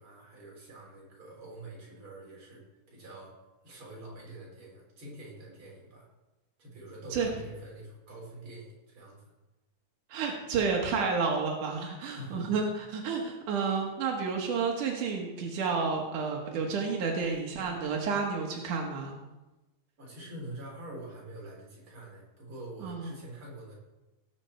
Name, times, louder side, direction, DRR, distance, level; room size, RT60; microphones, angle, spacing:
voice 1, 0.0-2.6 2.9-3.3 3.6-6.1 6.6-9.3 12.0-12.5 20.0-23.7, right 1 dB, 40° right, -4 dB, 4.8 m, -45 dB
voice 2, 10.1-19.2 22.8-23.1, right 5 dB, 90° right, 1 dB, 3.0 m, -30 dB
18.0 x 8.1 x 4.5 m, 1.1 s
omnidirectional pair, 3.5 m